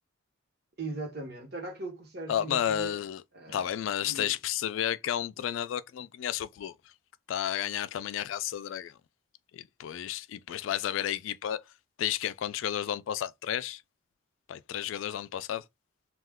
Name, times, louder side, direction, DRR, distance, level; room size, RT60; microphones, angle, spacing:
voice 1, 0.8-3.0 3.3-3.7 4.0-4.4, right 3 dB, 55° right, 1.0 m, -39 dB
voice 2, 2.3-3.2 3.5-6.7 7.3-8.9 9.5-11.6 12.0-13.8 14.5-15.6, left 10 dB, 80° left, 0.3 m, -32 dB
2.3 x 2.2 x 3.4 m
head